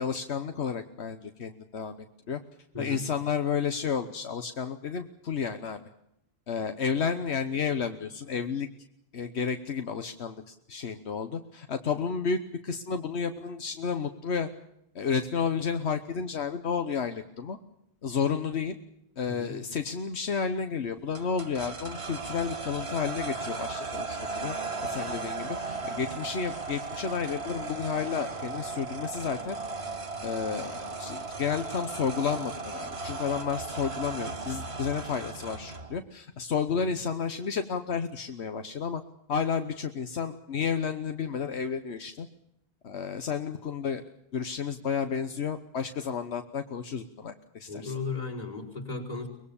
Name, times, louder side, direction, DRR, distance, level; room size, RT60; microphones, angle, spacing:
voice 1, 0.0-1.9 2.3-2.4 2.8-5.8 6.5-8.7 9.1-14.5 14.9-17.6 18.0-18.8 19.2-24.5 24.8-29.6 30.2-39.0 39.3-42.3 42.8-44.0 44.3-47.9, left 6 dB, 80° left, 7 dB, 1.4 m, -31 dB
sound 1, 21.1-36.0, right 3 dB, 75° right, 2.2 m, -36 dB
voice 2, 47.7-49.3, left 3 dB, 45° left, 3 dB, 4.9 m, -36 dB
24.0 x 20.5 x 7.1 m, 0.79 s
omnidirectional pair, 1.1 m